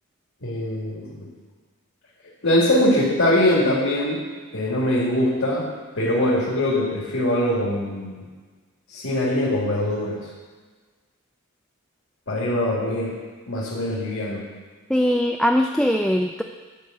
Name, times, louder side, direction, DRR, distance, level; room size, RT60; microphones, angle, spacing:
voice 1, 0.4-1.3 2.4-4.3 4.5-5.7 6.0-8.2 8.9-10.3 12.3-13.2 13.5-14.5, left 1 dB, 65° left, -6 dB, 2.3 m, -22 dB
voice 2, 14.9-16.4, equal, ahead, 3 dB, 0.3 m, -21 dB
11.5 x 5.0 x 7.9 m, 1.4 s
head